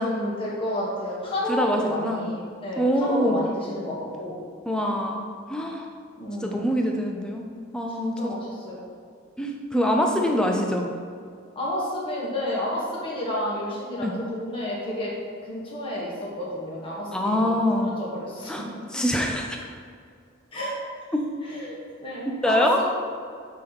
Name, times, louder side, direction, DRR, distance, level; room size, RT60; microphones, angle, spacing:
voice 1, 0.0-4.4 6.2-6.8 8.0-8.8 10.1-10.4 11.5-15.1 15.4-18.5 20.5-20.7 21.4-22.8, left 1 dB, 25° left, -6 dB, 1.2 m, -31 dB
voice 2, 1.5-2.2 2.8-3.4 4.7-5.9 6.4-7.5 7.7-8.4 9.4-10.9 14.0-14.2 17.1-17.9 18.5-18.6 18.9-19.6 21.1-21.2 22.4-22.8, equal, 5° left, 1 dB, 0.4 m, -24 dB
8.2 x 3.0 x 4.0 m, 2.3 s
head